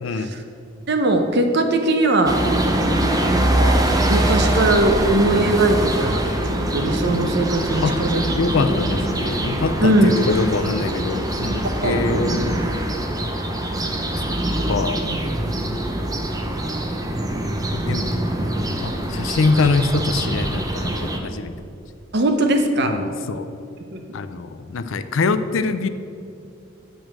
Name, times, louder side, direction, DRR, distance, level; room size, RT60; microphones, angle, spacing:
voice 1, 0.0-0.3 7.8-8.0 8.4-12.6 14.2-14.3 14.7-15.1 15.6-15.7 17.7-18.2 18.8-21.5 22.8-23.5 24.1-25.9, left 3 dB, 75° left, 11 dB, 0.5 m, -24 dB
voice 2, 0.9-2.4 3.3-6.2 6.7-8.2 9.8-10.1 11.6-12.2 15.0-15.2 22.1-23.0 23.9-24.0, right 2 dB, 55° right, 6 dB, 0.8 m, -20 dB
sound 1, 2.3-21.2, right 1 dB, 20° right, 0.7 m, -23 dB
7.7 x 5.2 x 7.4 m, 2.6 s
head